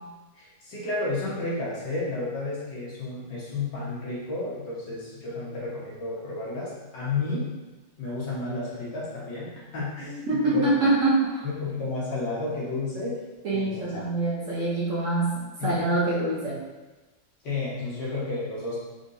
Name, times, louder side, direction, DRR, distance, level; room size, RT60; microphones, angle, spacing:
voice 1, 0.4-7.5 8.0-10.7 11.6-13.1 13.5-13.9 15.6-15.7 17.4-18.8, left 3 dB, 75° left, -7 dB, 2.0 m, -32 dB
voice 2, 10.3-11.4 13.4-15.3 15.6-16.6, right 2 dB, 55° right, -6 dB, 1.1 m, -24 dB
4.9 x 3.7 x 2.7 m, 1.2 s
omnidirectional pair, 1.9 m